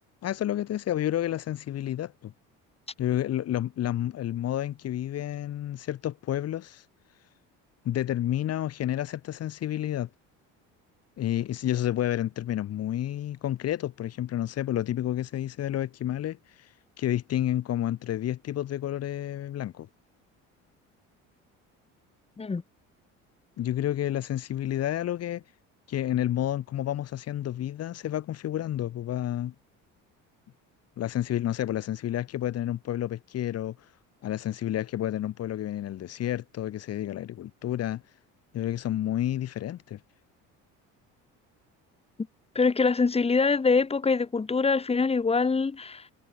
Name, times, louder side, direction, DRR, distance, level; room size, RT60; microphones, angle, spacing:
voice 1, 0.2-2.3 3.0-6.8 7.8-10.1 11.2-19.9 23.6-25.4 25.9-29.5 31.0-33.9 34.2-38.0 38.5-40.0, left 12 dB, 50° left, 3.3 m, -30 dB
voice 2, 42.5-46.1, left 4 dB, 20° left, 4.5 m, -24 dB
cardioid pair, 135°, 31 cm